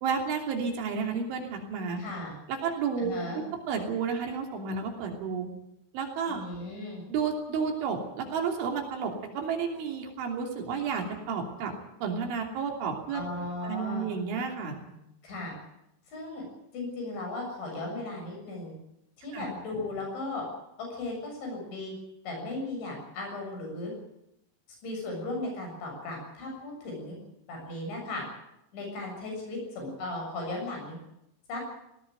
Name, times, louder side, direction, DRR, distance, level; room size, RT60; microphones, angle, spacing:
voice 1, 0.0-2.0 2.5-3.2 3.7-5.5 5.9-6.5 7.1-11.7 12.0-13.2 13.6-14.8 19.3-19.4, right 5 dB, 85° right, 2 dB, 5.4 m, -31 dB
voice 2, 2.0-2.4 3.0-3.4 6.3-7.0 13.1-14.1 15.2-15.5 16.1-16.5 16.7-18.7 19.2-20.5 20.8-21.9 22.2-23.9 24.8-27.2 27.5-28.2 28.7-31.0 31.5-31.6, left 2 dB, 70° left, 1 dB, 9.5 m, -36 dB
18.5 x 18.5 x 9.2 m, 0.83 s
omnidirectional pair, 5.4 m